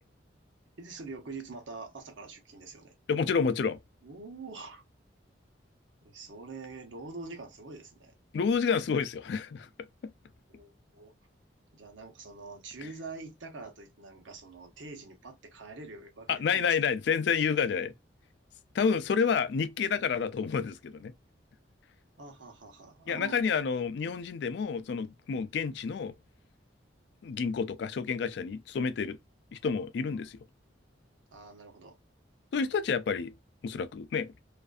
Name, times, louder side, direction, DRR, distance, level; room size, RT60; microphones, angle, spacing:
voice 1, 0.8-2.9 4.0-4.8 6.0-8.1 10.5-11.1 11.7-16.8 22.2-23.4 31.3-32.0, right 3 dB, 85° right, 0.9 m, -45 dB
voice 2, 3.1-3.8 8.3-9.7 10.0-10.1 16.3-17.9 18.7-21.1 23.1-26.1 27.2-29.2 29.5-30.4 32.5-33.3 33.6-34.3, left 6 dB, 65° left, 0.3 m, -29 dB
2.5 x 2.3 x 2.4 m
head